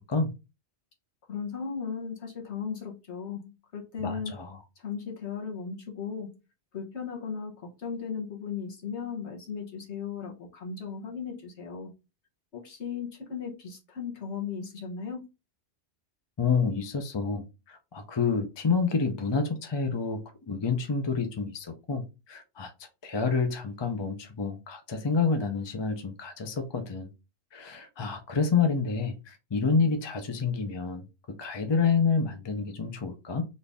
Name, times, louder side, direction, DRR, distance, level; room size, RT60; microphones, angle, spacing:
voice 1, 1.3-4.4 4.8-6.4 6.7-11.9 12.5-15.3, left 6 dB, 80° left, 1.4 m, -36 dB
voice 2, 4.0-4.6 16.4-27.1 27.5-33.4, left 5 dB, 30° left, 0.6 m, -28 dB
4.1 x 2.6 x 3.4 m
omnidirectional pair, 1.1 m